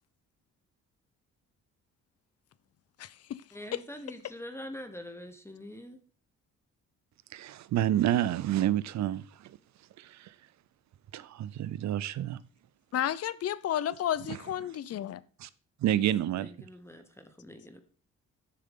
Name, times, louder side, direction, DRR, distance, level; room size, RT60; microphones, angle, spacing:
voice 1, 3.0-3.4 3.7-3.8 12.9-15.2, left 11 dB, 55° left, 0.6 m, -32 dB
voice 2, 3.5-6.0 16.3-17.8, left 1 dB, 10° left, 1.1 m, -44 dB
voice 3, 7.3-9.5 10.0-10.3 11.1-12.4 14.3-14.4 15.4-15.5 15.8-16.5, right 12 dB, 65° right, 0.6 m, -29 dB
11.0 x 6.7 x 3.8 m
cardioid pair, 90°, 30 cm